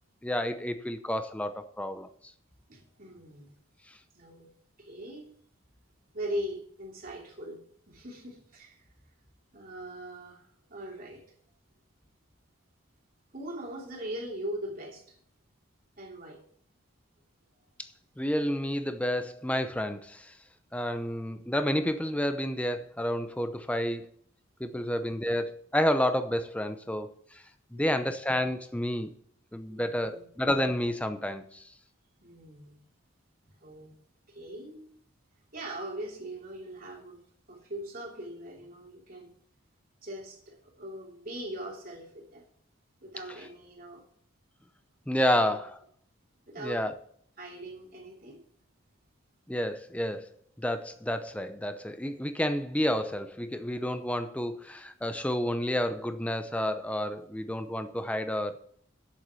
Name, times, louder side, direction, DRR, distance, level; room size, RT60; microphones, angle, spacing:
voice 1, 0.2-2.1 18.2-20.3 20.7-24.1 24.6-27.4 27.7-29.1 29.5-31.7 45.1-45.8 46.6-46.9 49.5-58.6, equal, 5° left, 9 dB, 0.6 m, -30 dB
voice 2, 2.7-3.5 4.1-4.5 4.8-5.3 6.1-8.8 9.5-11.2 13.3-15.2 16.0-16.4 24.8-25.0 27.7-28.2 29.7-30.3 32.2-32.8 33.5-33.9 34.3-35.0 35.5-37.2 37.5-39.3 40.0-42.4 43.0-44.0 45.3-45.6 46.5-46.8 47.4-48.4, right 1 dB, 45° right, -2 dB, 2.8 m, -41 dB
8.1 x 7.3 x 7.0 m, 0.62 s
head